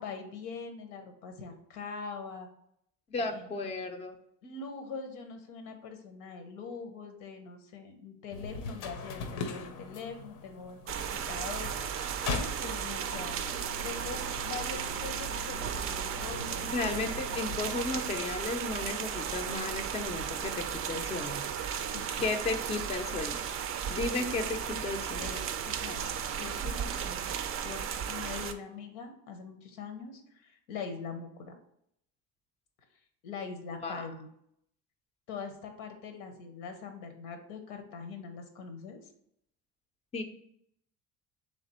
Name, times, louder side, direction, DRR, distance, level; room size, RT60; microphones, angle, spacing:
voice 1, 0.0-2.5 3.3-3.5 4.4-12.0 12.3-13.4 13.8-16.7 21.9-22.6 24.7-24.8 25.1-26.1 26.4-27.3 27.6-31.5 33.2-34.3 35.3-39.1, left 5 dB, 85° left, 6 dB, 0.9 m, -43 dB
voice 2, 3.1-4.2 16.6-21.4 22.2-23.4 23.9-25.3 33.8-34.1 40.1-40.2, left 3 dB, 20° left, 5 dB, 0.4 m, -34 dB
sound 1, 8.3-18.2, left 4 dB, 65° left, 0.6 m, -41 dB
sound 2, 10.9-28.5, right 8 dB, 40° right, 0.4 m, -35 dB
3.3 x 3.3 x 4.2 m, 0.73 s
cardioid pair, 110°, 34 cm